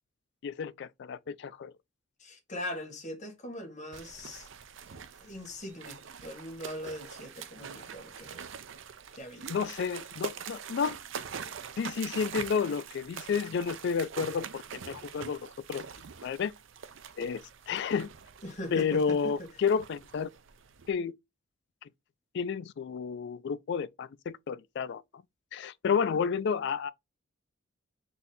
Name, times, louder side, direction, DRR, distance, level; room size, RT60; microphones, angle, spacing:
voice 1, 0.4-1.7 9.5-11.0 11.8-15.8 16.2-16.5 17.2-18.1 18.7-20.3 20.9-21.1 21.8-21.9 22.3-25.0 25.5-26.9, left 6 dB, 55° left, 0.3 m, -31 dB
voice 2, 2.2-4.5 4.9-8.5 9.1-9.5 18.4-19.5, left 1 dB, 35° left, 1.3 m, -41 dB
sound 1, 3.9-20.9, right 7 dB, 70° right, 0.5 m, -44 dB
4.0 x 2.7 x 3.9 m
head